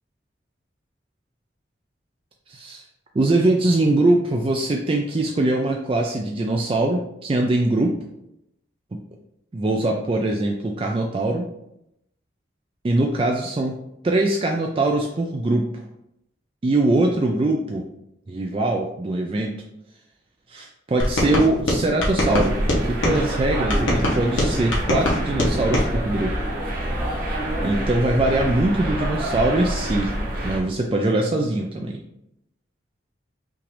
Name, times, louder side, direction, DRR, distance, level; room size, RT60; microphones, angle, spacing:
voice 1, 2.5-2.8 3.1-7.9 9.5-11.5 12.8-13.8 14.0-15.8 16.6-17.8 18.3-19.5 20.5-22.5 22.8-26.3 27.6-30.1 30.4-32.0, right 2 dB, 30° right, 1 dB, 0.3 m, -22 dB
sound 1, 21.0-23.2 23.7-25.9, left 1 dB, 90° left, 1.2 m, -23 dB
sound 2, 22.2-30.6, right 1 dB, 45° right, 1.1 m, -27 dB
5.7 x 2.6 x 3.3 m, 0.80 s
head